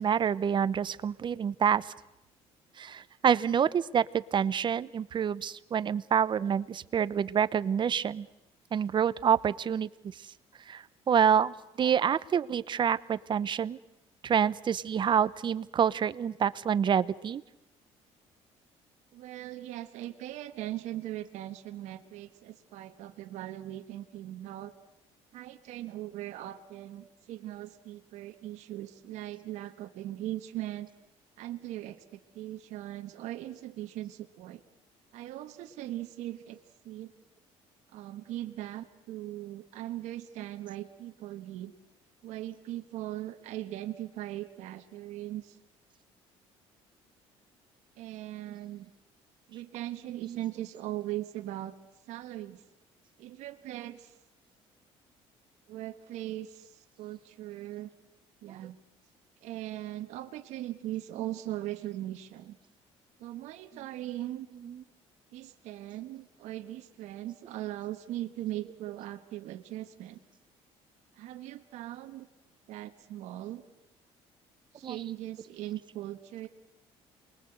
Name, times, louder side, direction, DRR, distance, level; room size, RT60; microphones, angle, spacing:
voice 1, 0.0-1.9 2.8-8.3 8.7-9.9 10.7-13.8 14.2-17.4 50.3-50.4 63.7-63.9 64.5-64.8 74.8-75.0, right 8 dB, 40° right, 16 dB, 0.9 m, -27 dB
voice 2, 19.1-24.7 25.3-30.9 31.4-34.6 35.1-36.6 36.8-37.1 37.9-41.7 42.2-45.6 48.0-48.9 49.5-51.8 52.1-52.6 53.2-54.1 55.7-57.9 58.4-58.8 59.4-62.6 63.2-64.5 65.3-70.2 71.2-72.3 72.7-73.6 74.7-76.5, right 14 dB, 80° right, 6 dB, 1.4 m, -39 dB
28.0 x 21.5 x 8.0 m, 0.90 s
cardioid pair, 100°, 12 cm